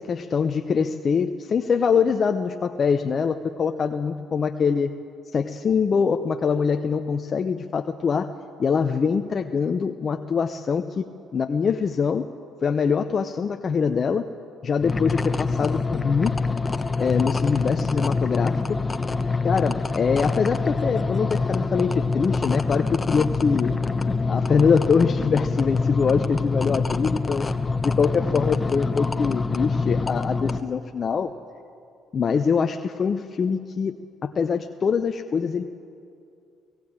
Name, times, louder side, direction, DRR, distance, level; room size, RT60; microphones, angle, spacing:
voice 1, 0.0-4.9 5.3-8.3 8.6-11.1 11.3-12.2 12.6-14.3 14.6-16.3 17.0-18.8 19.4-23.7 24.3-27.5 27.8-31.3 32.1-35.6, left 6 dB, 50° left, 7 dB, 0.7 m, -23 dB
sound 1, 14.8-30.6, left 3 dB, 25° left, 1.1 m, -25 dB
17.5 x 17.0 x 8.8 m, 2.5 s
hypercardioid pair, 55°, 0 cm